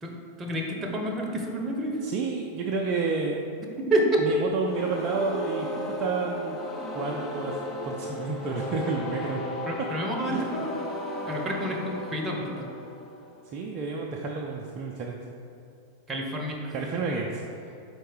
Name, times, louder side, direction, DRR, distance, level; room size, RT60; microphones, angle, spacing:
voice 1, 0.0-2.0 3.8-4.2 9.7-10.7 11.3-12.7 16.1-16.7, right 1 dB, 20° right, 1 dB, 0.9 m, -29 dB
voice 2, 2.0-3.4 4.2-6.6 6.9-7.5 7.8-9.4 10.3-10.6 13.5-15.2 16.7-17.7, right 4 dB, 35° right, -1 dB, 0.5 m, -30 dB
sound 1, 4.6-13.5, left 1 dB, 20° left, 0.8 m, -35 dB
4.5 x 4.4 x 4.7 m, 2.6 s
figure-of-eight pair, 90°, 0 cm